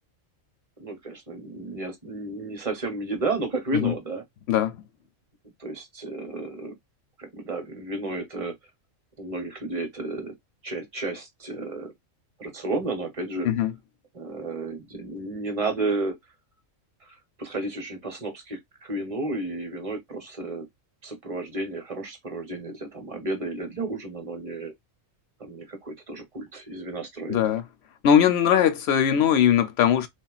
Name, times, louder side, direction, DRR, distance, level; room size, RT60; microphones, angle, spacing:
voice 1, 0.8-4.2 5.6-6.7 7.2-8.5 9.2-10.3 10.6-11.9 12.4-13.5 14.1-16.2 17.0-20.7 21.0-24.7 25.4-27.4, right 2 dB, 30° right, 0.8 m, -32 dB
voice 2, 27.3-27.6 28.0-30.1, left 9 dB, 65° left, 0.7 m, -20 dB
3.4 x 2.4 x 2.3 m
omnidirectional pair, 1.4 m